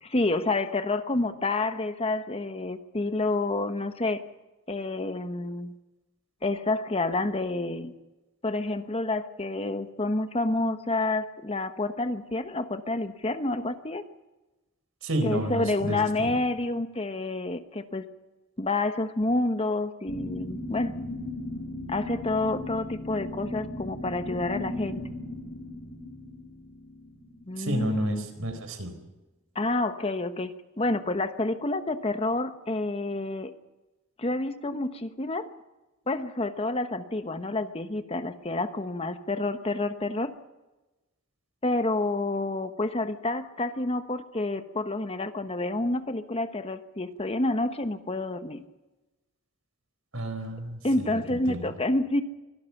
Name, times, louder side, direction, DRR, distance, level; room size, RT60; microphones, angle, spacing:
voice 1, 0.0-4.2 4.7-5.7 6.4-7.9 8.4-14.1 15.2-18.0 18.6-20.9 21.9-25.0 27.5-28.2 29.5-33.5 34.2-35.5 36.1-40.3 41.6-48.6 50.8-52.2, left 2 dB, 30° left, 10 dB, 1.1 m, -29 dB
voice 2, 15.0-16.3 27.6-28.9 50.1-51.7, right 1 dB, 90° right, 8 dB, 4.3 m, -31 dB
sound 1, 20.1-28.0, left 1 dB, 65° left, 7.7 m, -37 dB
24.0 x 16.5 x 7.1 m, 1.1 s
head